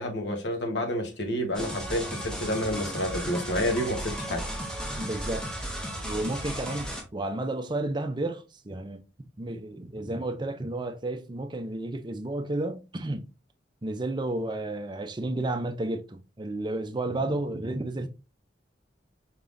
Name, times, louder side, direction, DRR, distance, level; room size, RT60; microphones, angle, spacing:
voice 1, 0.0-4.4, equal, 70° left, 1.1 m, -29 dB
sound 1, 1.5-7.0, equal, 5° left, 0.9 m, -35 dB
voice 2, 5.0-5.5 6.0-9.0 9.4-13.3 13.8-18.1, right 2 dB, 25° right, 0.5 m, -32 dB
4.7 x 3.6 x 2.5 m
head